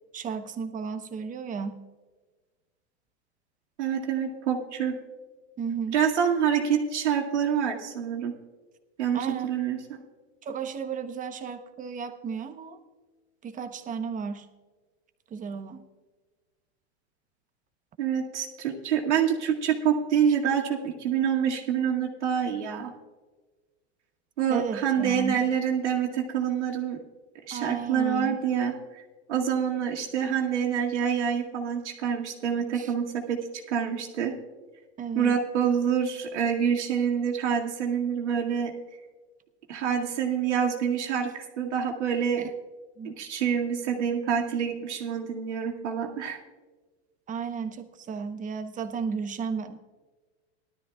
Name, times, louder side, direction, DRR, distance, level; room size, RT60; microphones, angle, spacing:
voice 1, 0.1-1.8 5.6-6.0 9.1-9.5 10.4-12.8 13.4-14.5 15.3-15.8 24.5-25.4 27.5-28.4 32.7-32.9 35.0-35.4 42.4-42.5 43.0-43.1 47.3-49.8, right 6 dB, 25° right, 8 dB, 0.9 m, -33 dB
voice 2, 3.8-5.0 5.9-8.3 9.0-10.0 18.0-22.9 24.4-27.0 27.5-28.7 29.3-33.4 33.7-34.3 35.1-38.7 39.7-42.4 43.0-46.4, right 8 dB, 85° right, 0 dB, 2.2 m, -26 dB
18.5 x 12.5 x 2.4 m, 1.3 s
hypercardioid pair, 120°, 34 cm